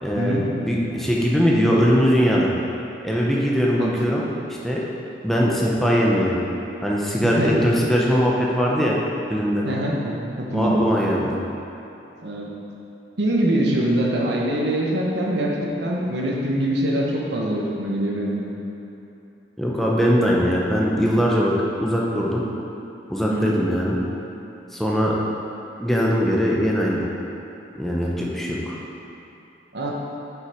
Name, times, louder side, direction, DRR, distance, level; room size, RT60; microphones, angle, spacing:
voice 1, 0.0-2.5 3.0-4.2 4.5-4.8 5.2-6.4 6.8-8.9 9.3-9.6 10.5-11.4 19.6-21.5 21.8-22.4 23.1-24.0 24.7-25.2 25.8-27.1 27.8-28.8, equal, ahead, -4 dB, 0.8 m, -21 dB
voice 2, 7.2-7.6 9.6-10.9 12.2-12.5 13.2-15.5 15.8-18.5 23.3-23.5 29.7-29.9, right 1 dB, 70° right, -2 dB, 1.2 m, -23 dB
7.7 x 5.8 x 4.5 m, 2.9 s
head